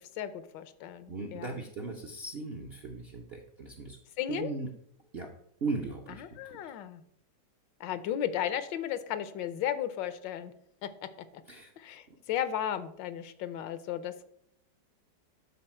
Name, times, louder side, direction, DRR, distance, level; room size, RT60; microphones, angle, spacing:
voice 1, 0.0-1.6 4.2-4.5 6.1-7.0 7.8-10.5 10.8-10.9 11.8-14.1, left 10 dB, 80° left, 13 dB, 1.4 m, -35 dB
voice 2, 1.1-4.0 4.3-4.7 5.1-5.3 5.6-6.6 11.5-11.7, right 3 dB, 60° right, 2 dB, 0.6 m, -37 dB
11.0 x 4.1 x 4.4 m, 0.72 s
omnidirectional pair, 2.0 m